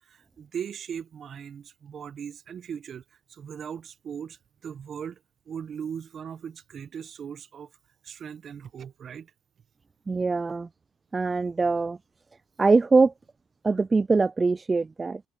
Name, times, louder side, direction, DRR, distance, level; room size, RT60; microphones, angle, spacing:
voice 1, 0.0-3.0 3.3-5.2 5.5-7.7 8.0-9.3, right 7 dB, 45° right, 1.3 m, -38 dB
voice 2, 10.1-10.7 11.1-12.0 12.6-13.1 13.6-15.2, right 4 dB, 20° right, 0.3 m, -22 dB
supercardioid pair, 95°, 0 cm